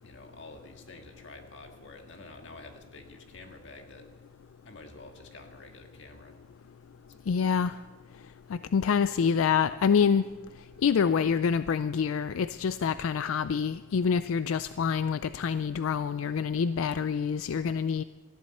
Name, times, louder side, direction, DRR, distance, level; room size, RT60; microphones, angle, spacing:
voice 1, 0.0-4.1 4.6-6.4 7.1-7.2, left 2 dB, 65° left, 4 dB, 1.8 m, -49 dB
voice 2, 7.3-7.7 8.5-10.3 10.8-18.0, left 6 dB, 90° left, 13 dB, 0.4 m, -26 dB
19.5 x 14.0 x 4.3 m, 1.3 s
head